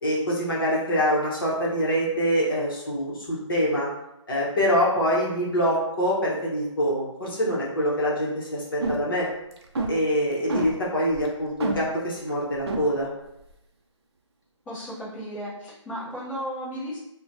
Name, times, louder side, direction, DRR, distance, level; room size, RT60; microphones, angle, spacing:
voice 1, 0.0-3.9 4.3-9.3 9.9-13.1, equal, 45° left, -5 dB, 0.8 m, -25 dB
sound 1, 8.7-9.2 9.5-9.9 10.5-10.7 11.1-11.3 11.6-11.8 12.3-12.4 12.7-12.8, right 2 dB, 55° right, 0.5 m, -26 dB
voice 2, 14.7-17.0, equal, 10° left, -15 dB, 0.6 m, -34 dB
3.0 x 2.1 x 2.6 m, 0.87 s
figure-of-eight pair, 160°, 16 cm